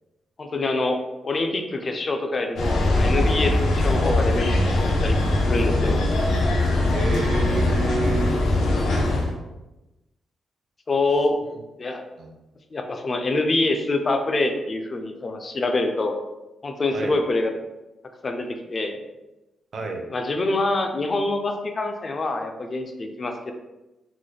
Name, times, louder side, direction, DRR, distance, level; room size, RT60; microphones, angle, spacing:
voice 1, 0.4-4.5 4.8-5.2 5.4-6.0 10.9-11.4 11.8-12.0 12.7-16.1 16.6-17.5 18.2-19.0 20.1-23.5, left 2 dB, 30° left, 5 dB, 0.3 m, -25 dB
sound 1, 2.5-9.3, left 2 dB, 90° left, 0.7 m, -21 dB
voice 2, 6.9-8.4 12.2-12.3 16.9-17.1 19.7-20.0, right 3 dB, 45° right, 2 dB, 0.5 m, -28 dB
3.8 x 2.2 x 3.2 m, 1.0 s
wide cardioid pair, 175°, 0 cm